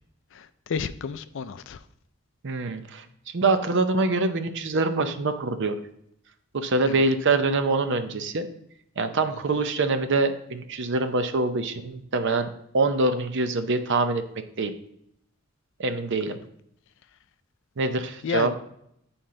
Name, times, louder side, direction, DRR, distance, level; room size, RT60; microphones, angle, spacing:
voice 1, 0.3-1.8 6.9-7.1 18.2-18.5, left 6 dB, 60° left, 0.4 m, -31 dB
voice 2, 2.4-5.8 6.5-8.5 9.0-12.5 12.7-14.2 14.6-14.7 15.8-16.4 17.8-18.5, right 3 dB, 60° right, 0.6 m, -25 dB
9.4 x 4.4 x 3.7 m
head